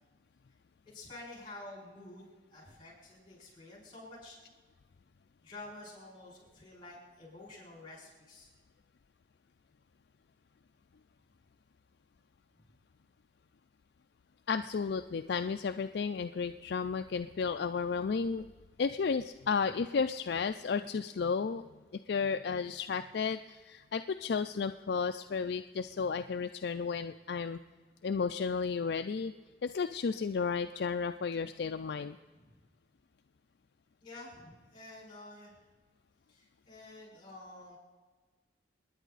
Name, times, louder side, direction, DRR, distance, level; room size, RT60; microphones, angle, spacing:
voice 1, 0.8-4.4 5.4-8.5 32.3-32.5 34.0-35.6 36.3-37.8, left 2 dB, 25° left, -3 dB, 6.4 m, -50 dB
voice 2, 14.5-18.4 18.8-21.6 21.9-27.6 28.0-29.3 29.6-32.2, left 5 dB, 60° left, 8 dB, 0.4 m, -33 dB
28.5 x 10.0 x 4.0 m, 1.4 s
head